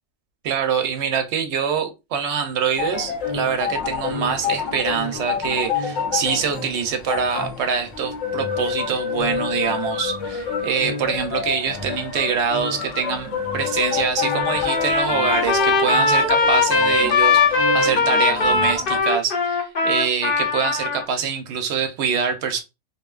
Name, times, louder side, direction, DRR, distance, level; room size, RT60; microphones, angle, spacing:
voice 1, 0.4-22.6, right 6 dB, 70° right, 0.8 m, -25 dB
sound 1, 2.8-19.0, left 6 dB, 75° left, 1.0 m, -28 dB
Trumpet, 14.2-21.0, left 4 dB, 50° left, 0.8 m, -20 dB
2.6 x 2.1 x 2.3 m
omnidirectional pair, 1.3 m